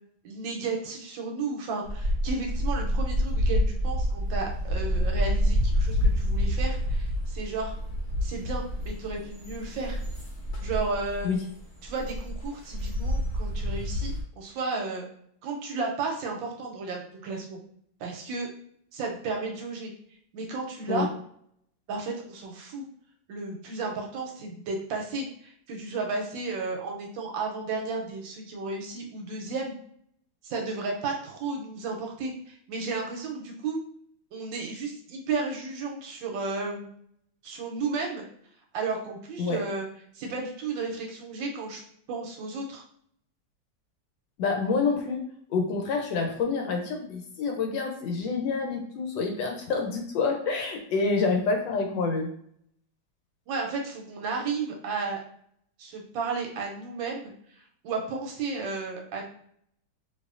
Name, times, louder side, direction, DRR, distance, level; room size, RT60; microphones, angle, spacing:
voice 1, 0.2-7.7 8.2-10.0 10.6-11.3 11.8-15.1 15.4-17.6 18.0-18.5 18.9-19.9 20.3-21.1 21.9-22.8 23.3-29.8 30.4-33.8 34.3-36.9 37.4-38.2 38.7-39.9 40.1-41.8 42.1-42.8 53.5-55.2 55.8-57.3 57.8-59.2, right 4 dB, 75° right, 1 dB, 1.2 m, -33 dB
sound 1, 1.9-14.2, equal, 60° left, 0.7 m, -28 dB
voice 2, 44.4-45.2 45.5-52.3, left 4 dB, 75° left, 3 dB, 1.2 m, -27 dB
4.1 x 2.6 x 2.4 m, 0.67 s
omnidirectional pair, 2.2 m